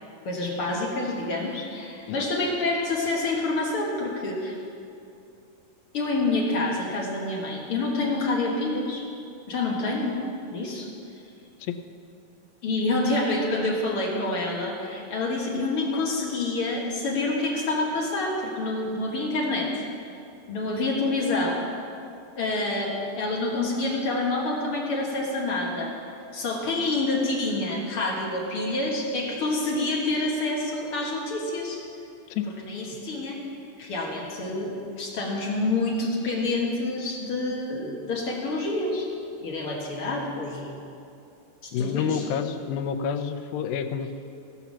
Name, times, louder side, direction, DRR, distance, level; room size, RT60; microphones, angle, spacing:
voice 1, 0.2-4.6 5.9-9.0 9.5-10.1 10.5-10.9 12.6-19.7 20.5-21.6 22.4-25.9 26.3-31.8 32.6-33.4 33.8-39.1 39.4-40.7 41.6-42.2, left 2 dB, 55° left, -2 dB, 1.7 m, -27 dB
voice 2, 41.7-44.1, left 7 dB, 90° left, 8 dB, 2.5 m, -28 dB
17.0 x 5.9 x 7.2 m, 2.6 s
omnidirectional pair, 4.1 m